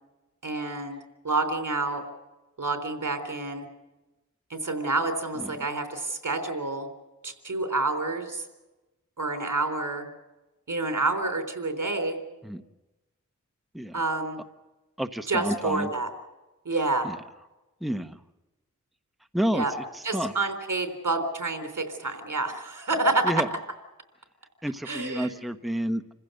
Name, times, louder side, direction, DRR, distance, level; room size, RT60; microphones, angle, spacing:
voice 1, 0.4-1.0 1.2-2.0 2.6-3.7 4.5-6.9 7.2-8.4 9.2-10.1 10.7-12.2 13.9-14.4 15.3-16.1 16.7-17.1 19.5-19.7 20.0-23.3 24.8-25.3, right 2 dB, 75° right, 7 dB, 3.7 m, -28 dB
voice 2, 15.0-15.9 17.0-17.2 17.8-18.2 19.3-19.6 19.9-20.3 23.2-23.5 24.6-26.1, equal, ahead, 8 dB, 1.2 m, -29 dB
28.0 x 15.5 x 7.9 m, 1.1 s
wide cardioid pair, 60°, 31 cm